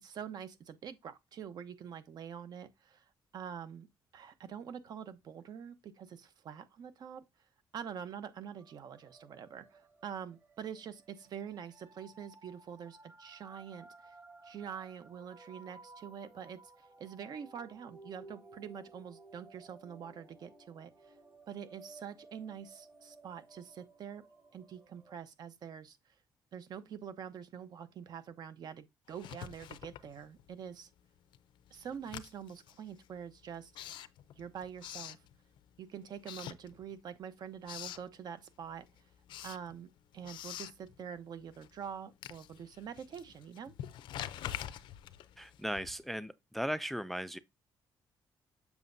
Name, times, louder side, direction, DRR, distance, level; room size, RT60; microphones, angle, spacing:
voice 1, 0.0-3.0 3.3-3.9 4.1-7.3 7.7-14.1 14.4-20.9 21.5-24.2 24.5-26.0 26.5-30.9 31.7-33.7 34.4-35.2 35.8-38.9 39.4-39.9 40.1-43.7, right 8 dB, 60° right, 0.8 m, -45 dB
sound 1, 8.4-25.2, right 2 dB, 30° right, 1.6 m, -57 dB
Writing, 29.1-30.7 31.0-35.8 36.2-37.2 37.4-38.1 38.5-46.2, left 11 dB, 85° left, 0.5 m, -46 dB
voice 2, 45.4-47.4, equal, ahead, 0.3 m, -37 dB
7.3 x 5.9 x 2.6 m
cardioid pair, 125°, 8 cm